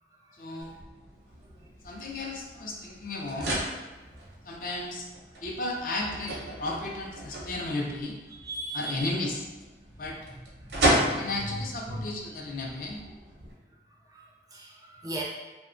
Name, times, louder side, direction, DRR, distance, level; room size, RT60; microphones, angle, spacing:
voice 1, 0.3-0.8 1.8-3.5 4.4-5.1 5.4-8.2 8.7-9.4 10.0-10.2 11.1-13.0, left 2 dB, 50° left, 0 dB, 0.4 m, -34 dB
sound 1, 0.6-13.5, right 1 dB, 75° right, 0.7 m, -34 dB
voice 2, 8.3-9.1 10.3-11.5 11.9-12.0 14.0-14.2 14.5-15.2, right 2 dB, 20° right, -2 dB, 0.4 m, -39 dB
2.7 x 2.1 x 2.5 m, 1.2 s
head